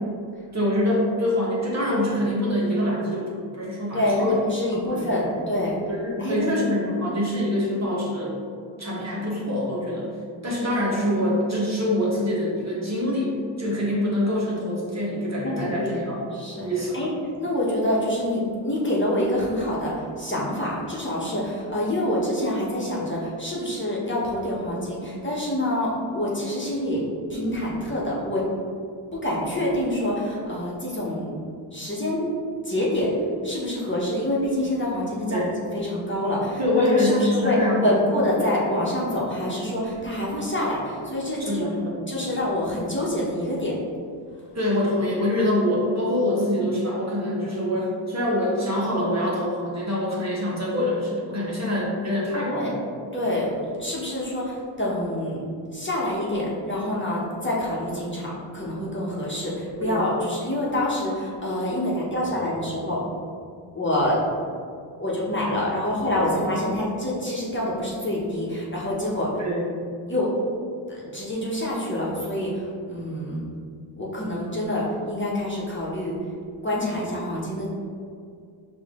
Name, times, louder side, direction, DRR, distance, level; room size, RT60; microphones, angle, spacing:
voice 1, 0.5-4.4 4.7-5.3 5.9-8.3 8.8-10.1 10.4-16.2 16.6-17.1 35.2-35.5 36.6-37.9 38.4-38.5 41.4-42.3 44.5-52.7 59.8-60.1 69.4-69.8, left 1 dB, 35° right, -5 dB, 1.3 m, -25 dB
voice 2, 3.9-5.8 6.2-6.5 15.4-16.0 16.3-16.7 16.9-17.1 17.4-27.0 27.3-28.5 29.2-31.4 31.7-32.3 32.6-33.1 33.4-35.4 35.7-41.7 42.1-43.7 52.3-52.7 53.1-53.5 53.8-55.4 55.7-63.0 63.7-64.2 65.0-69.3 70.1-70.3 70.9-73.4 74.0-76.1 76.6-77.7, left 1 dB, 25° left, -6 dB, 1.2 m, -26 dB
4.7 x 2.6 x 3.6 m, 2.3 s
cardioid pair, 45°, 48 cm